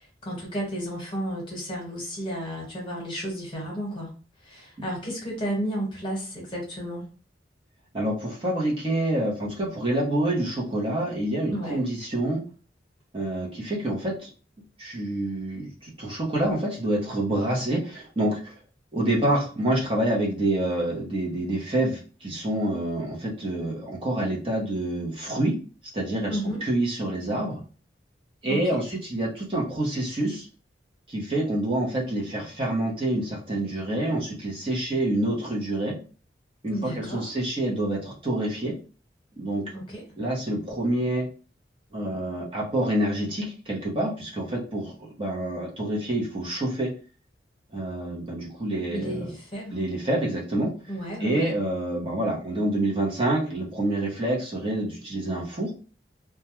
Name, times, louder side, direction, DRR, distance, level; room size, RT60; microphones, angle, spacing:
voice 1, 0.0-4.1 4.4-7.0 11.5-11.8 26.3-26.6 28.5-28.8 36.7-37.3 39.7-40.0 48.9-49.8 50.9-51.5, equal, 30° left, -3 dB, 1.1 m, -32 dB
voice 2, 7.9-12.4 13.1-14.3 14.8-18.6 18.9-25.6 25.9-27.6 28.4-30.5 31.1-36.0 36.6-38.7 39.4-39.6 40.2-41.3 41.9-44.9 45.2-46.9 47.7-49.3 49.7-50.7 51.2-55.7, right 1 dB, 30° right, -3 dB, 0.7 m, -27 dB
2.3 x 2.2 x 2.9 m, 0.38 s
head